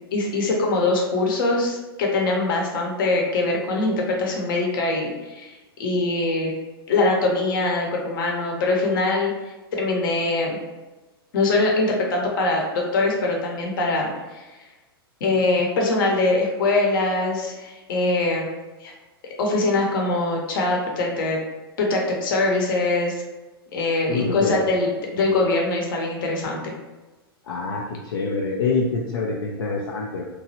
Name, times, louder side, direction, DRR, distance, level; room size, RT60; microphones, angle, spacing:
voice 1, 0.1-6.5 6.9-9.3 9.7-10.5 11.3-14.4 15.2-18.5 18.8-18.9 19.4-21.4 21.8-23.2 23.7-26.7, left 2 dB, 60° left, 0 dB, 0.8 m, -23 dB
voice 2, 24.1-24.6 27.5-30.3, left 4 dB, 75° left, -2 dB, 0.4 m, -25 dB
3.0 x 2.2 x 2.8 m, 1.1 s
figure-of-eight pair, 100°, 13 cm